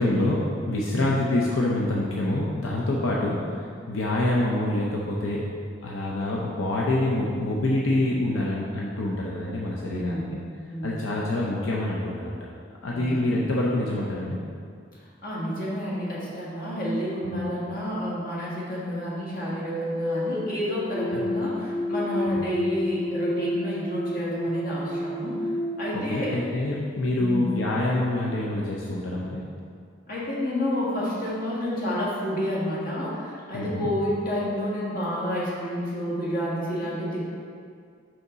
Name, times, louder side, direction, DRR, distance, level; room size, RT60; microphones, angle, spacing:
voice 1, 0.0-5.5 5.8-10.4 10.8-12.4 12.8-14.4 17.2-17.4 21.1-21.2 22.3-22.4 25.9-29.5 33.5-33.9, left 1 dB, 80° left, -4 dB, 0.7 m, -26 dB
voice 2, 0.8-1.1 9.9-10.3 10.7-10.9 12.9-13.3 15.2-25.3 25.8-26.4 27.2-27.4 30.1-37.2, equal, 45° left, -6 dB, 1.7 m, -30 dB
sound 1, 19.4-26.8, left 1 dB, 20° right, 0.8 m, -30 dB
5.7 x 5.5 x 3.9 m, 2.2 s
head